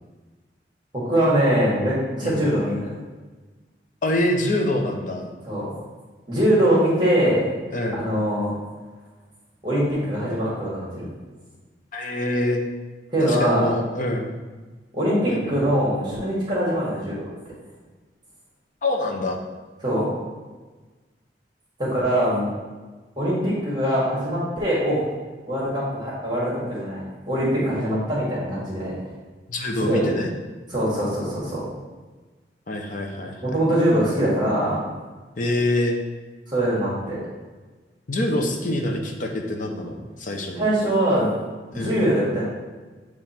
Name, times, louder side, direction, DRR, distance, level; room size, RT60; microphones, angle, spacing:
voice 1, 1.0-2.9 5.5-5.7 6.3-7.5 7.9-8.5 9.6-11.1 13.1-13.7 14.9-17.3 19.8-20.1 21.8-22.5 23.2-25.0 25.5-28.9 29.8-30.1 30.7-31.6 33.4-34.8 36.5-37.2 40.5-41.3 41.7-42.4, right 1 dB, 25° right, -8 dB, 1.5 m, -22 dB
voice 2, 4.0-5.3 7.7-8.1 11.9-12.6 13.2-14.3 15.3-15.6 18.8-19.4 29.5-30.3 32.7-33.4 35.4-36.0 38.1-40.7 41.7-42.0, left 1 dB, 50° left, 3 dB, 0.7 m, -25 dB
7.3 x 3.1 x 4.3 m, 1.3 s
head